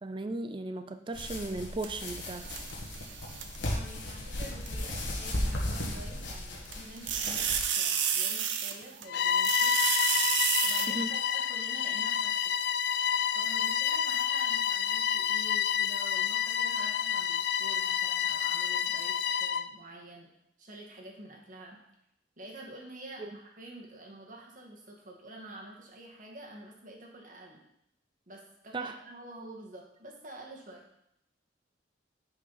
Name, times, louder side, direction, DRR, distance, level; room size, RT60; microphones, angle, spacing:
voice 1, 0.0-2.5 10.9-11.1 23.2-23.3 28.7-28.9, right 2 dB, 25° right, 9 dB, 0.4 m, -36 dB
sound 1, 1.1-7.6, left 1 dB, 85° left, 1.6 m, -36 dB
sound 2, 1.8-3.6 4.7-4.8 6.6-9.0 9.4-10.9, right 8 dB, 80° right, 0.7 m, -30 dB
voice 2, 3.7-7.4 7.7-9.8 10.6-12.3 13.3-20.3 20.6-21.8 22.4-27.6 28.3-30.8, right 1 dB, 45° right, -1 dB, 1.7 m, -48 dB
Bowed string instrument, 9.1-19.7, left 8 dB, 55° left, 0.3 m, -29 dB
9.6 x 5.0 x 4.1 m, 0.77 s
head